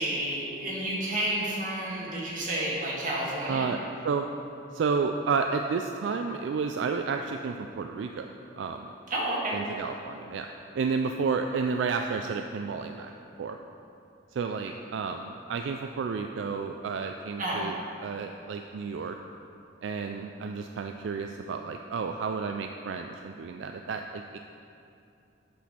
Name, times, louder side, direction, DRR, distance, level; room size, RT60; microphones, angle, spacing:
voice 1, 0.0-3.7 9.1-9.6 17.4-17.7, right 1 dB, 45° right, -5 dB, 1.8 m, -30 dB
voice 2, 3.5-3.8 4.0-4.3 4.7-8.3 8.6-8.9 9.5-10.5 10.7-13.1 13.4-13.6 14.3-17.8 18.0-19.2 19.8-24.4, right 5 dB, 75° right, 4 dB, 0.3 m, -31 dB
8.2 x 6.3 x 4.3 m, 2.7 s
head